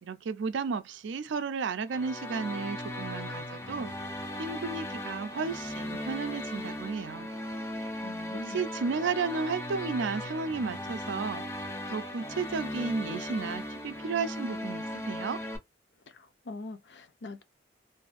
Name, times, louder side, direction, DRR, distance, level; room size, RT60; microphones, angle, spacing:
voice 1, 0.0-3.9 4.4-7.3 8.3-15.4, right 5 dB, 75° right, 0.4 m, -33 dB
sound 1, 1.9-15.6, left 1 dB, 15° left, 0.5 m, -37 dB
voice 2, 8.0-8.6 16.1-17.4, left 3 dB, 65° left, 0.5 m, -43 dB
2.6 x 2.4 x 2.4 m
head